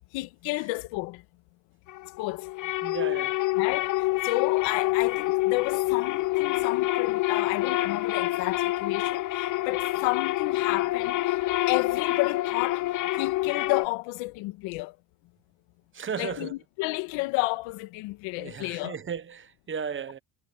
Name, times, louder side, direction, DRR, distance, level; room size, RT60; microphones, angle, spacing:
voice 1, 0.1-1.2 2.2-2.5 3.6-11.4 11.7-12.9 13.2-14.9 16.2-18.9, left 22 dB, 75° left, 1.5 m, -31 dB
sound 1, 1.9-13.9, left 17 dB, 40° left, 0.6 m, -27 dB
voice 2, 2.8-3.4 15.9-16.5 18.4-20.2, right 7 dB, 25° right, 1.0 m, -35 dB
cardioid pair, 115°, 46 cm